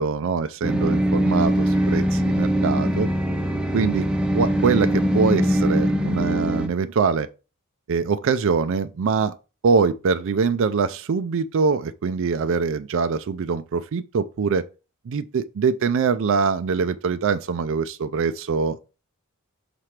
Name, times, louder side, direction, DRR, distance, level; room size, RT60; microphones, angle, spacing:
voice 1, 0.0-3.1 3.7-4.1 4.3-7.3 7.9-9.3 9.6-14.7 15.1-18.8, right 5 dB, 60° right, 0.4 m, -23 dB
sound 1, 0.6-6.7, equal, 5° right, 0.7 m, -22 dB
5.9 x 3.2 x 5.8 m
head